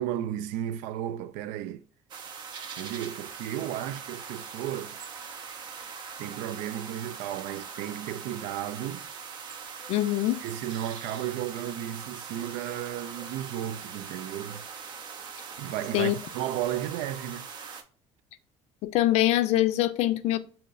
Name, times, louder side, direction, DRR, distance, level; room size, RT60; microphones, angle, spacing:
voice 1, 0.0-1.8 2.8-5.0 6.2-9.1 10.4-14.6 15.6-17.5, right 11 dB, 90° right, 0.4 m, -34 dB
sound 1, 2.1-17.8, right 6 dB, 35° right, 0.5 m, -42 dB
voice 2, 9.9-10.4 15.9-16.2 18.8-20.4, left 14 dB, 60° left, 0.4 m, -24 dB
6.4 x 2.8 x 2.3 m
cardioid pair, 170°, 12 cm